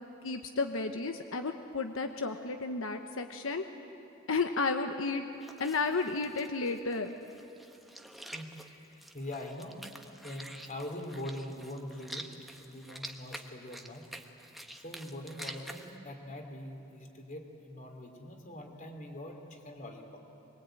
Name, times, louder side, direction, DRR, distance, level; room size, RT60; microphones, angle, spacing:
voice 1, 0.2-3.6 4.3-5.2 5.6-7.1, left 3 dB, 90° left, 6 dB, 1.0 m, -32 dB
sound 1, 5.4-15.9, right 1 dB, ahead, 1.2 m, -48 dB
voice 2, 8.3-9.8 10.2-14.1 14.7-20.2, left 1 dB, 40° left, 4 dB, 3.1 m, -43 dB
23.5 x 22.5 x 9.0 m, 2.8 s
head